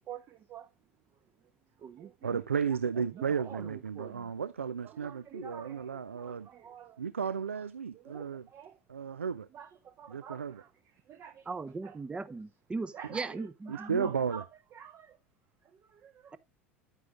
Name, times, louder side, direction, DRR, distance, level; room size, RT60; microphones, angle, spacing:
voice 1, 0.1-0.7 1.1-1.2 1.8-2.4 2.9-4.3 4.8-7.0 7.9-8.8 9.5-11.5 11.8-12.0 12.9-15.2 15.6-16.3, right 9 dB, 40° right, 0.9 m, -48 dB
voice 2, 2.2-6.5 7.0-8.4 8.9-9.5 10.1-10.6 13.7-14.4, right 6 dB, 80° right, 0.4 m, -33 dB
voice 3, 11.5-14.1, right 3 dB, 15° right, 0.6 m, -38 dB
9.8 x 9.1 x 2.4 m
figure-of-eight pair, 75°, 7 cm